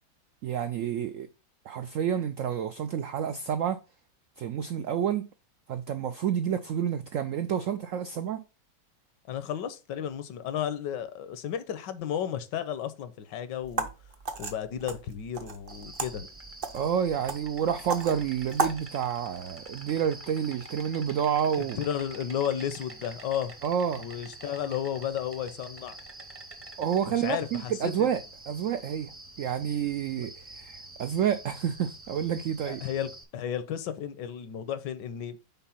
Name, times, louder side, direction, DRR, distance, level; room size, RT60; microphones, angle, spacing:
voice 1, 0.4-1.3 1.7-3.8 4.4-5.3 5.7-8.4 16.7-21.8 23.6-24.0 26.8-32.8, right 8 dB, 80° right, 0.7 m, -29 dB
voice 2, 9.3-13.9 14.4-16.3 21.8-23.5 24.0-26.0 27.1-27.9 30.2-30.3 32.7-35.4, left 9 dB, 80° left, 1.4 m, -33 dB
sound 1, 13.6-18.8, right 3 dB, 45° right, 0.7 m, -35 dB
Insect, 15.7-33.2, right 2 dB, 15° right, 0.6 m, -46 dB
5.7 x 4.4 x 5.7 m
omnidirectional pair, 1.9 m